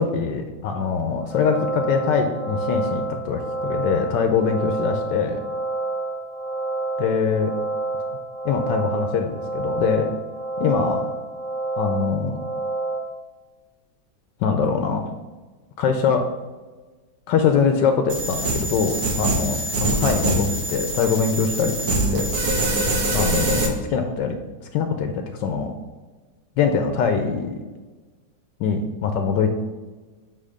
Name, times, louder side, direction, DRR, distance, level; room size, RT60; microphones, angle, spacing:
voice 1, 0.0-5.4 7.0-7.5 8.4-10.1 10.6-11.1 11.8-12.4 14.4-15.0 15.8-16.2 17.3-22.7 23.1-24.3 24.6-25.7 26.6-27.6 28.6-29.5, left 6 dB, 75° left, 5 dB, 1.2 m, -23 dB
sound 1, 1.2-13.0, right 2 dB, 5° right, 0.8 m, -28 dB
sound 2, 18.1-23.7, right 1 dB, 55° right, 1.5 m, -24 dB
7.7 x 3.3 x 5.0 m, 1.3 s
omnidirectional pair, 2.0 m